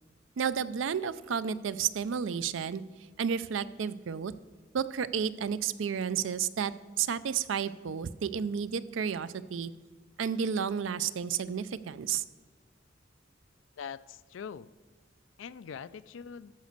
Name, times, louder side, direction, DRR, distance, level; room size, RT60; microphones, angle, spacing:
voice 1, 0.4-2.8 3.2-4.3 4.7-6.7 7.0-9.7 10.2-12.2, right 7 dB, 85° right, 15 dB, 0.4 m, -31 dB
voice 2, 13.8-14.7 15.4-16.5, left 7 dB, 80° left, 17 dB, 0.4 m, -43 dB
13.0 x 5.1 x 6.6 m, 1.3 s
head